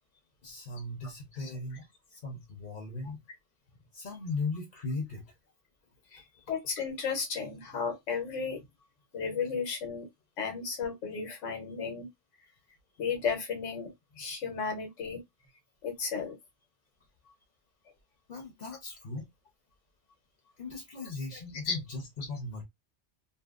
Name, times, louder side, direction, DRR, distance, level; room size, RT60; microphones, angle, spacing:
voice 1, 0.4-3.2 3.9-5.4 6.1-6.2 18.3-19.3 20.6-22.6, left 3 dB, 45° left, 0.8 m, -38 dB
voice 2, 1.3-1.8 6.1-6.2 6.5-8.6 9.1-10.1 10.4-12.1 13.0-13.9 14.1-15.2 15.8-16.3 21.1-21.2 21.6-21.8, left 5 dB, 80° left, 1.3 m, -34 dB
2.7 x 2.7 x 2.4 m
omnidirectional pair, 1.3 m